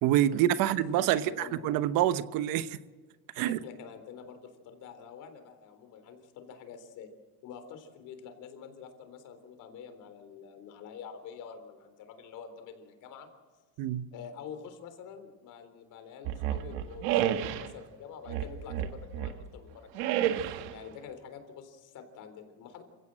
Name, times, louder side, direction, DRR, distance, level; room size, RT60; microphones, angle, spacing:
voice 1, 0.0-2.7 3.4-3.6 13.8-14.1, right 12 dB, 65° right, 1.0 m, -26 dB
voice 2, 1.1-1.6 3.4-7.1 7.4-13.3 14.1-20.2 20.7-22.8, left 7 dB, 55° left, 3.7 m, -47 dB
sound 1, 16.2-17.7 18.3-19.4 19.9-20.8, right 11 dB, 85° right, 1.6 m, -31 dB
28.0 x 16.5 x 7.7 m
cardioid pair, 160°, 36 cm